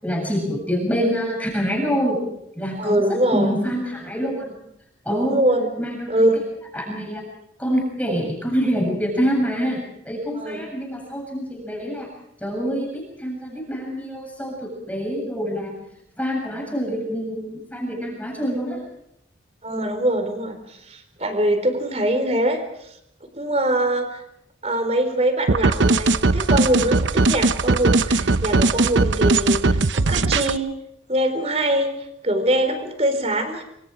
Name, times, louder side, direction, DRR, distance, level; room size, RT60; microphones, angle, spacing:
voice 1, 0.0-2.2 2.6-3.0 3.3-4.5 5.1-5.4 5.8-6.3 6.7-7.2 7.6-12.1 12.4-15.8 16.2-18.8, equal, 10° left, 0 dB, 7.3 m, -26 dB
voice 2, 2.8-3.6 5.1-5.7 6.1-6.4 10.3-10.7 19.6-22.9 23.3-24.2 24.6-30.6 31.1-31.9 32.2-33.6, right 1 dB, 35° right, 8 dB, 4.2 m, -23 dB
sound 1, 25.5-30.6, right 3 dB, 80° right, 0.8 m, -19 dB
26.0 x 26.0 x 4.9 m, 0.78 s
head